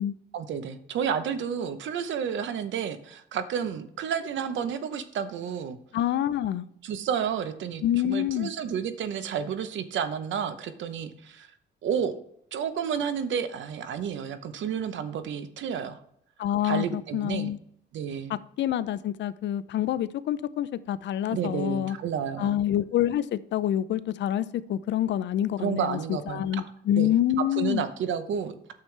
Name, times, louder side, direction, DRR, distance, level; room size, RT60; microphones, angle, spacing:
voice 1, 0.3-5.8 6.8-11.5 11.8-12.1 12.5-16.0 16.6-17.5 17.9-18.3 21.3-22.6 25.6-26.5 27.0-27.2 27.6-28.5, right 7 dB, 70° right, 11 dB, 0.9 m, -31 dB
voice 2, 5.9-6.7 7.8-8.5 16.4-17.6 18.3-22.0 22.4-27.8, left 11 dB, 65° left, 15 dB, 0.5 m, -27 dB
9.4 x 6.8 x 3.3 m, 0.68 s
cardioid pair, 90°, 20 cm